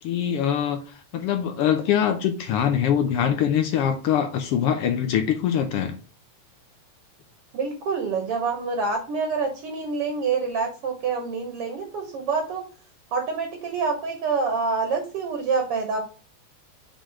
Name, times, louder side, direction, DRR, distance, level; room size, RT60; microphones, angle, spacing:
voice 1, 0.0-6.0, left 9 dB, 80° left, 6 dB, 1.3 m, -23 dB
voice 2, 7.5-12.7 13.1-16.0, right 4 dB, 60° right, 4 dB, 1.8 m, -26 dB
6.3 x 3.9 x 4.7 m, 0.36 s
omnidirectional pair, 3.4 m